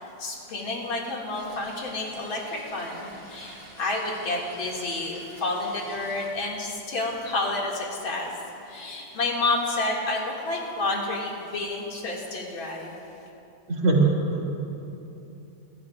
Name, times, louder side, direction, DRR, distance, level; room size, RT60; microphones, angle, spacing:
voice 1, 0.0-8.3 8.7-12.9, left 2 dB, 85° left, -3 dB, 2.9 m, -30 dB
sound 1, 1.3-6.3, right 1 dB, 40° right, 3.1 m, -48 dB
voice 2, 13.7-14.5, right 3 dB, 85° right, -3 dB, 3.0 m, -22 dB
25.0 x 16.0 x 2.4 m, 2.9 s
omnidirectional pair, 2.1 m